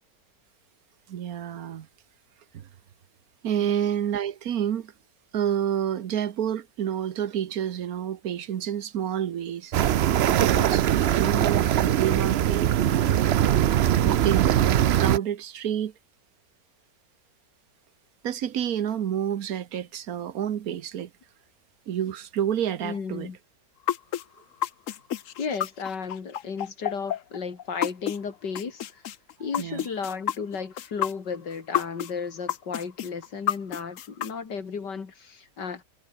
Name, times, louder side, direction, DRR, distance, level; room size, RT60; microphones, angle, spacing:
voice 1, 1.1-1.9 2.5-2.7 3.4-4.9 5.3-10.0 10.3-13.2 14.0-15.9 18.2-21.1 21.9-23.3 29.6-29.9, right 9 dB, 60° right, 1.4 m, -29 dB
sound 1, 9.7-15.2, right 11 dB, 80° right, 0.5 m, -21 dB
voice 2, 22.8-23.4 25.4-29.0 29.4-35.8, left 5 dB, 90° left, 3.0 m, -34 dB
sound 2, 23.9-28.2 28.5-32.1 32.5-34.3, left 10 dB, 55° left, 1.0 m, -29 dB
omnidirectional pair, 1.8 m